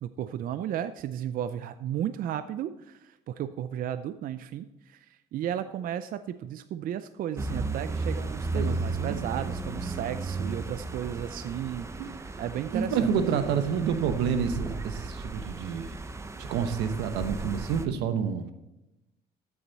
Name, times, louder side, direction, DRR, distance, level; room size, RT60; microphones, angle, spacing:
voice 1, 0.0-13.0 13.4-13.6, right 10 dB, 55° right, 12 dB, 0.5 m, -34 dB
sound 1, 7.4-17.9, right 3 dB, 15° right, 0.7 m, -34 dB
voice 2, 8.5-9.2 12.0-12.1 12.7-15.9 16.4-18.5, right 7 dB, 90° right, 9 dB, 1.0 m, -28 dB
13.0 x 7.3 x 4.0 m, 0.93 s
cardioid pair, 110°, 17 cm